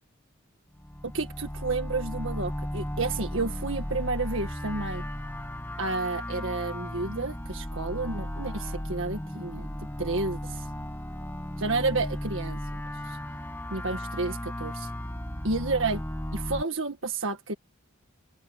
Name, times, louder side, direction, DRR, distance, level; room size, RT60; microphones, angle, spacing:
sound 1, 0.7-16.6, equal, 10° left, 1.6 m, -35 dB
voice 1, 1.0-5.0 5.8-9.7 10.0-10.7 11.6-12.8 13.1-13.2 13.7-14.9 15.4-16.0 16.3-17.5, right 3 dB, 65° right, 1.8 m, -31 dB
head